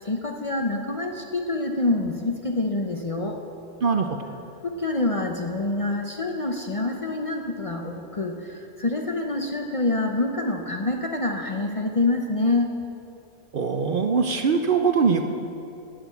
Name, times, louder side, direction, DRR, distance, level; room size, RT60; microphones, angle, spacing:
voice 1, 0.0-3.4 4.6-12.7, left 2 dB, 35° left, 2 dB, 0.7 m, -26 dB
voice 2, 3.8-4.2 13.5-15.3, right 5 dB, 55° right, 6 dB, 0.7 m, -22 dB
9.1 x 8.9 x 8.0 m, 2.8 s
omnidirectional pair, 1.2 m